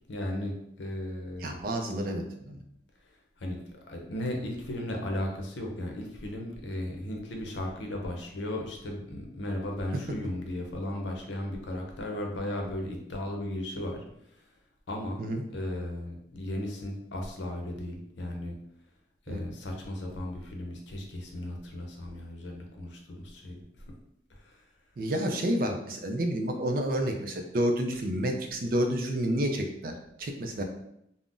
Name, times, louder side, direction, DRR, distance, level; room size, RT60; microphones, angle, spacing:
voice 1, 0.1-1.6 3.4-14.0 14.9-18.5 19.3-23.8 24.4-24.6, left 1 dB, 85° left, 2 dB, 0.6 m, -36 dB
voice 2, 1.4-2.6 15.2-15.4 19.3-19.4 25.0-30.6, right 1 dB, 50° right, 4 dB, 0.4 m, -30 dB
2.5 x 2.0 x 3.6 m, 0.76 s
head